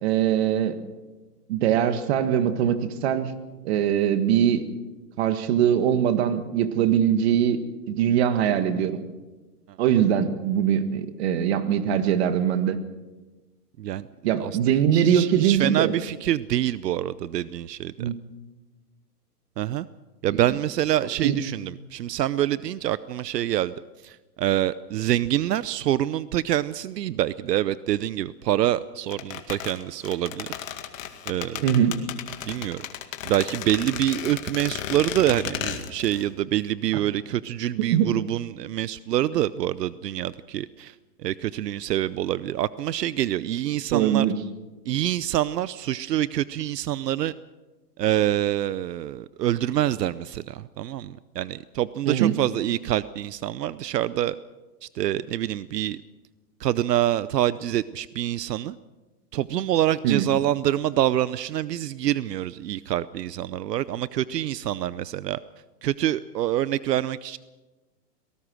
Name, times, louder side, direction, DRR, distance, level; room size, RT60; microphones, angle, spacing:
voice 1, 0.0-0.8 1.5-3.3 3.6-4.6 5.2-7.6 7.9-9.0 9.8-12.8 14.2-15.9 18.0-18.2 20.3-20.4 21.2-21.4 31.6-32.0 37.9-38.1 43.9-44.4 52.0-52.4 60.0-60.3, right 9 dB, 40° right, 10 dB, 1.7 m, -22 dB
voice 2, 14.4-18.1 19.6-19.9 20.2-23.7 24.0-30.5 31.3-31.6 32.5-32.8 33.2-40.9 41.2-44.3 44.9-47.3 48.0-54.4 54.8-56.0 56.6-58.7 59.3-65.4 65.8-67.4, right 12 dB, 80° right, 17 dB, 0.8 m, -26 dB
sound 1, 29.1-36.3 36.5-36.6, left 10 dB, 55° left, 2.1 m, -34 dB
23.5 x 19.0 x 6.3 m, 1.2 s
hypercardioid pair, 160°, 48 cm